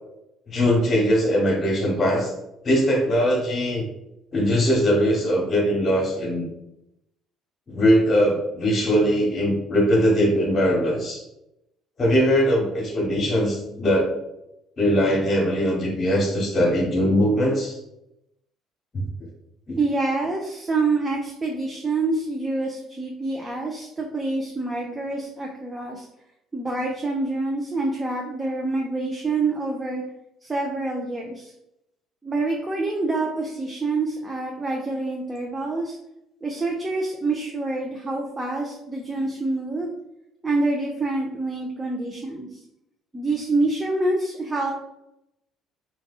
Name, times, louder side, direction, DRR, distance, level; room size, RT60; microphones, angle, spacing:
voice 1, 0.5-2.3 2.6-3.9 4.3-6.5 7.7-11.2 12.0-14.1 14.8-17.8 18.9-19.0 19.7-19.8, equal, 40° left, 0 dB, 1.0 m, -21 dB
voice 2, 19.8-26.1 26.5-30.0 30.4-31.5 32.2-36.0 36.4-39.9 40.4-42.6 43.1-44.7, right 2 dB, 25° right, -1 dB, 0.5 m, -26 dB
2.6 x 2.2 x 2.3 m, 0.84 s
hypercardioid pair, 60°, 0 cm